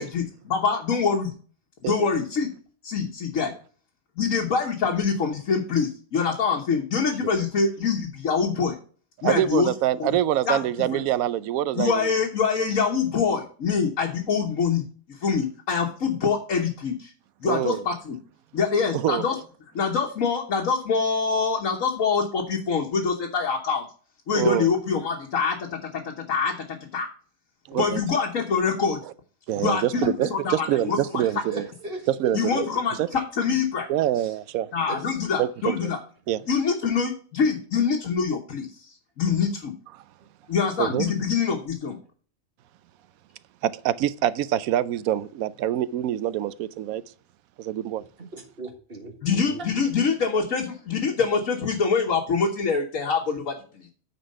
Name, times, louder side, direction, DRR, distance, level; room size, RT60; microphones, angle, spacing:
voice 1, 0.0-1.3 1.8-2.5 2.8-3.5 4.2-8.8 9.2-9.7 10.0-10.1 10.5-10.6 10.9-11.0 11.7-14.8 15.2-17.1 17.4-18.2 18.5-19.4 19.7-23.8 24.3-27.1 27.7-29.0 29.6-31.0 32.3-33.9 34.7-36.0 36.5-39.7 40.5-42.0 49.2-53.9, left 5 dB, 70° left, 1.5 m, -25 dB
voice 2, 9.2-12.1 17.4-17.9 18.9-19.2 24.3-24.7 27.7-28.0 29.0-29.1 29.5-31.7 32.1-32.6 33.0-33.1 33.9-34.7 35.4-35.9 36.3-36.4 40.8-41.1 43.6-47.0 47.6-48.0, right 12 dB, 85° right, 1.0 m, -25 dB
voice 3, 31.2-32.0 32.4-32.7 34.9-35.0 48.2-49.7, right 3 dB, 45° right, 1.7 m, -36 dB
9.4 x 4.3 x 5.3 m
omnidirectional pair, 1.4 m